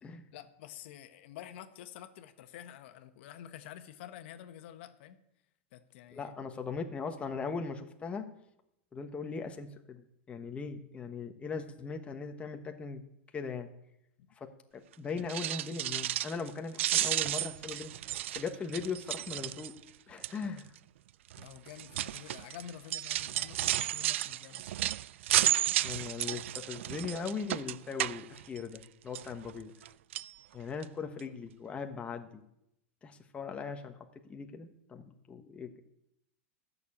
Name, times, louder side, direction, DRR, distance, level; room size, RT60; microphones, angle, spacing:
voice 1, 0.3-5.2 5.7-6.3 21.4-24.7, left 11 dB, 65° left, 9 dB, 1.2 m, -49 dB
voice 2, 6.1-8.3 8.9-13.0 13.3-13.7 14.4-14.5 15.0-19.7 20.1-20.6 25.8-29.7 30.5-32.4 33.0-34.0 34.3-35.8, left 5 dB, 20° left, 4 dB, 1.1 m, -39 dB
sound 1, 15.2-16.5 16.7-19.9 20.2-20.6 21.3-28.8 29.1-29.9 30.1-30.3 30.8-30.9 31.2-31.3, right 13 dB, 80° right, 0.4 m, -33 dB
13.0 x 6.8 x 8.5 m, 0.81 s
supercardioid pair, 130°, 7 cm